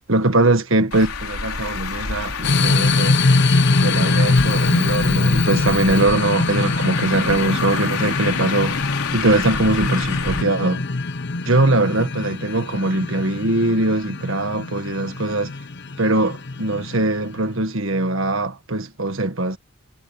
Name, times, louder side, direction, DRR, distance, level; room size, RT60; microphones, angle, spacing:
voice 1, 0.1-3.2 3.8-8.8 9.1-10.8 11.4-15.5 16.0-19.6, right 2 dB, 60° right, 1.7 m, -21 dB
Traffic noise roadway noise, 0.9-10.4, left 6 dB, 90° left, 3.6 m, -29 dB
sound 1, 2.4-17.5, left 3 dB, 50° left, 0.8 m, -22 dB
head